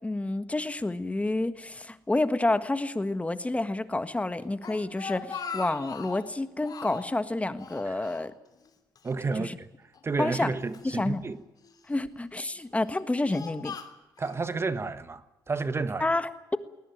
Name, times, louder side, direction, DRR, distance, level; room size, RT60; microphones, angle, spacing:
voice 1, 0.0-8.3 9.4-9.6 10.2-10.5 10.8-11.2 11.9-13.7 16.0-16.6, left 2 dB, 15° left, 1.6 m, -29 dB
Speech, 4.4-6.3 6.6-7.2 7.6-8.7 9.0-9.1 9.9-10.9 11.6-12.1 12.7-14.4, left 6 dB, 55° left, 3.1 m, -41 dB
voice 2, 9.0-9.7 10.0-11.4 14.2-16.1, right 4 dB, 35° right, 1.4 m, -31 dB
20.5 x 19.5 x 9.4 m
cardioid pair, 80°, 8 cm